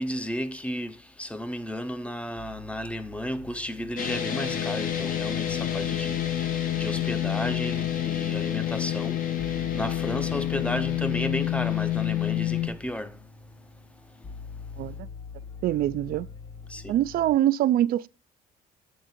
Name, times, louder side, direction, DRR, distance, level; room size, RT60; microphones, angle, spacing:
voice 1, 0.0-13.2 14.2-14.3 16.7-16.9, equal, 5° left, 0.6 m, -33 dB
sound 1, 2.3-17.4, left 5 dB, 25° left, 0.9 m, -44 dB
sound 2, 4.0-12.7, left 11 dB, 55° left, 1.0 m, -28 dB
voice 2, 14.8-15.1 15.6-16.3 16.9-18.1, right 13 dB, 60° right, 0.4 m, -24 dB
8.0 x 3.6 x 5.1 m
cardioid pair, 110°, 17 cm